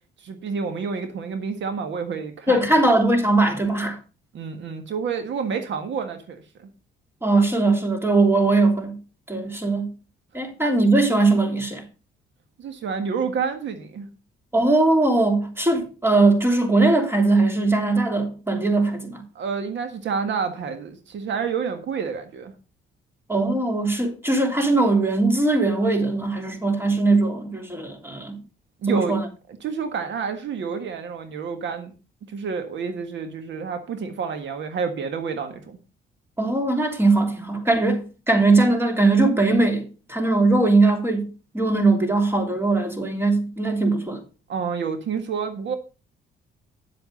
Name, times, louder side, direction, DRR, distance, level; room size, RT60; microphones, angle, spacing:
voice 1, 0.2-2.6 4.3-6.7 12.6-14.1 19.4-22.5 28.8-29.2 29.6-31.9 32.3-35.8 44.5-45.8, right 6 dB, 65° right, 1.7 m, -29 dB
voice 2, 2.5-4.0 7.2-9.0 9.3-9.9 10.3-11.8 14.5-19.2 23.3-28.4 28.9-29.2 36.4-44.2, right 2 dB, 10° right, 3.1 m, -20 dB
10.5 x 7.7 x 5.3 m
cardioid pair, 90°, 20 cm